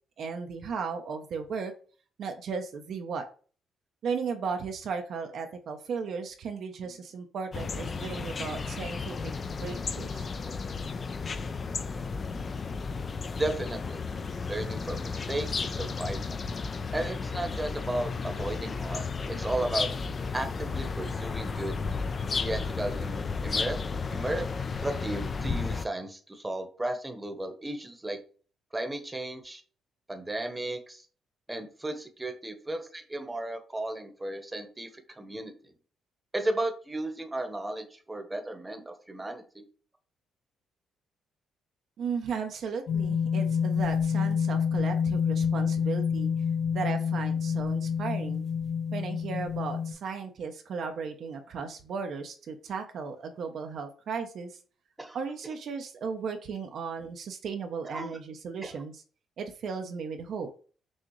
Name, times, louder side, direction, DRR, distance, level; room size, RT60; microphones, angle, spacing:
voice 1, 0.2-1.7 2.2-3.3 4.0-10.3 42.0-46.3 46.7-48.5 48.9-54.6 55.1-59.0 59.4-60.5, right 5 dB, 65° right, 5 dB, 0.6 m, -35 dB
sound 1, 7.5-25.9, left 4 dB, 40° left, 0.4 m, -33 dB
voice 2, 13.4-14.0 14.5-16.2 16.9-19.9 20.3-21.8 22.3-23.8 24.1-24.5 24.8-28.2 28.7-29.6 30.1-31.0 31.5-35.5 36.3-39.6 55.0-55.2 57.8-58.2 58.6-58.8, right 1 dB, 15° right, 6 dB, 0.9 m, -34 dB
sound 2, 42.9-49.9, left 7 dB, 75° left, 1.0 m, -28 dB
6.2 x 2.4 x 3.1 m, 0.39 s
cardioid pair, 90°, 0 cm